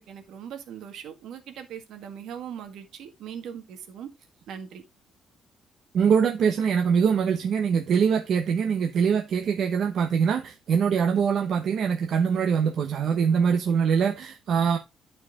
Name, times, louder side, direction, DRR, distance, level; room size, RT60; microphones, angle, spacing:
voice 1, 0.0-4.1 4.5-4.8, right 8 dB, 70° right, 1.8 m, -40 dB
voice 2, 5.9-14.8, right 6 dB, 50° right, 0.9 m, -23 dB
11.5 x 4.6 x 3.6 m
cardioid pair, 170°, 0 cm